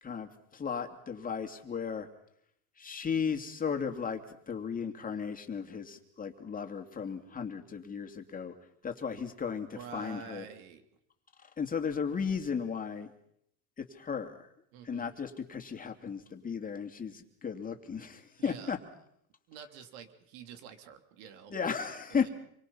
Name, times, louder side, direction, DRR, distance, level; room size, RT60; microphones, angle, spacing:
voice 1, 0.0-2.1 2.8-4.2 4.5-8.5 8.8-10.4 11.6-13.1 13.8-14.5 14.8-18.8 21.5-22.3, left 6 dB, 20° left, 5 dB, 2.7 m, -35 dB
voice 2, 9.7-10.8 14.7-15.1 18.4-18.8 19.5-21.7 22.1-22.3, right 7 dB, 80° right, 8 dB, 3.3 m, -48 dB
27.5 x 24.5 x 5.7 m, 0.72 s
cardioid pair, 135°, 38 cm